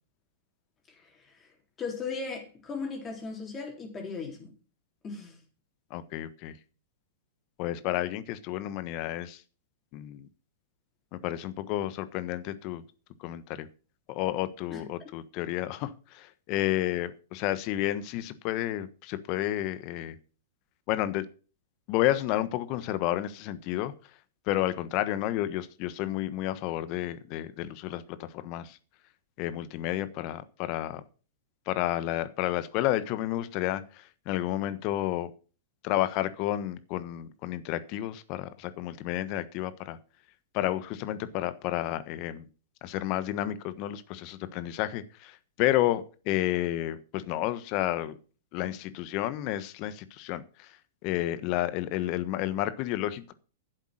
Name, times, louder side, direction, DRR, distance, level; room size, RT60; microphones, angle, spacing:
voice 1, 0.9-4.5 5.0-5.4 14.7-15.1, left 4 dB, 25° left, 1 dB, 3.9 m, -38 dB
voice 2, 5.9-6.6 7.6-9.4 9.9-10.3 11.1-12.8 13.2-13.7 14.1-20.2 20.9-21.2 21.9-23.9 24.5-28.8 29.4-31.0 31.7-35.3 35.8-40.0 40.5-42.5 42.8-48.2 48.5-50.7 51.0-53.3, left 14 dB, 45° left, 13 dB, 1.3 m, -31 dB
11.0 x 8.1 x 6.5 m, 0.36 s
hypercardioid pair, 105°, 0 cm